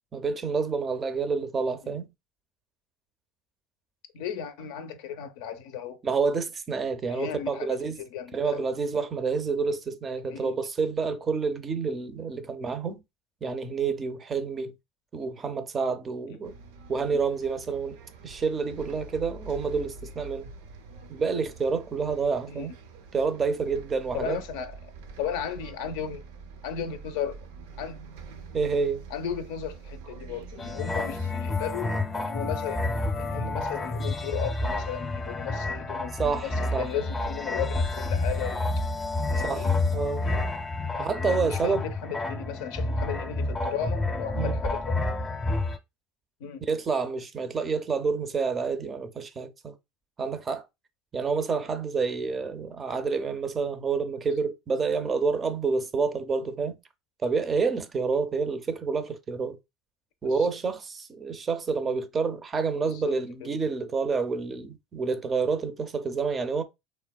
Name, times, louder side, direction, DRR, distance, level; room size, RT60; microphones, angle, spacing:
voice 1, 0.1-2.1 6.0-8.0 8.3-13.0 13.4-14.7 15.1-16.5 16.9-18.0 18.2-20.5 21.1-22.7 23.1-24.4 28.5-29.0 36.2-36.9 39.4-40.3 41.0-41.9 44.3-44.6 46.7-49.8 50.2-50.6 51.1-56.8 57.2-59.6 60.2-66.6, right 5 dB, 30° right, 0.4 m, -28 dB
voice 2, 4.1-6.0 7.1-7.8 8.1-8.6 10.3-10.5 22.5-22.7 24.1-24.8 25.2-26.2 26.6-27.4 27.8-28.0 28.6-28.7 29.1-32.8 33.2-38.6 39.3-39.7 40.9-45.0 46.4-46.6 60.4-60.5 62.8-63.5, left 8 dB, 75° left, 0.4 m, -35 dB
Bus, 16.4-31.3, right 4 dB, 85° right, 0.4 m, -45 dB
sound 1, 30.6-45.8, left 2 dB, 20° left, 0.5 m, -29 dB
3.3 x 2.1 x 2.2 m
supercardioid pair, 105°, 0 cm